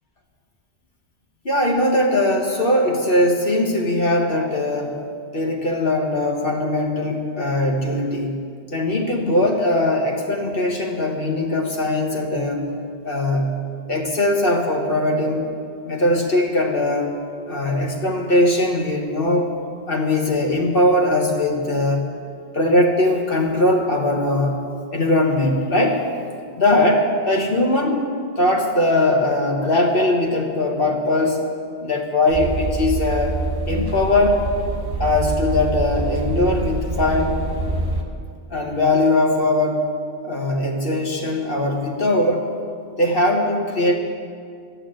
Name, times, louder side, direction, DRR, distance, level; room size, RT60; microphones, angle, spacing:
voice 1, 1.4-5.0 5.3-8.4 8.7-12.7 13.0-13.6 13.9-15.5 15.8-17.1 17.5-19.5 19.9-22.1 22.5-24.6 24.9-26.0 26.5-28.1 28.4-31.4 31.8-33.4 33.6-34.4 35.0-37.4 38.5-39.8 40.2-42.5 43.0-43.9, left 1 dB, 55° left, 1 dB, 1.6 m, -20 dB
sound 1, 32.3-38.0, right 2 dB, 70° right, 1.7 m, -25 dB
12.5 x 8.6 x 8.9 m, 2.3 s
omnidirectional pair, 1.1 m